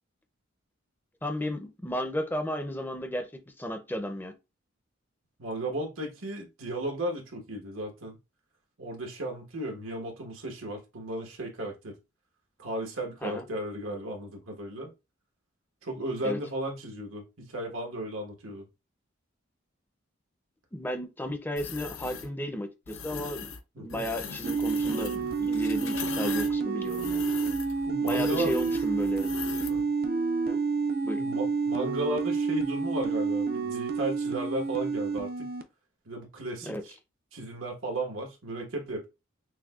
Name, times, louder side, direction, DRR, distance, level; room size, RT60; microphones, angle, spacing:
voice 1, 1.2-3.3 3.6-4.3 13.2-13.4 16.2-16.4 20.7-23.5 23.8-27.2 28.0-29.3 30.5-30.6 31.0-31.2 36.6-36.8, left 1 dB, 10° left, 0.5 m, -34 dB
voice 2, 5.4-8.2 8.8-11.9 12.6-14.9 15.8-18.6 23.7-24.0 27.8-28.5 29.7-29.8 31.2-35.5 36.0-36.9 37.3-39.1, right 1 dB, 90° right, 1.3 m, -35 dB
sound 1, 21.6-22.3 22.9-23.6 23.9-29.8, left 6 dB, 75° left, 0.6 m, -39 dB
sound 2, 24.4-35.6, right 4 dB, 45° right, 0.5 m, -29 dB
6.1 x 2.2 x 2.3 m
head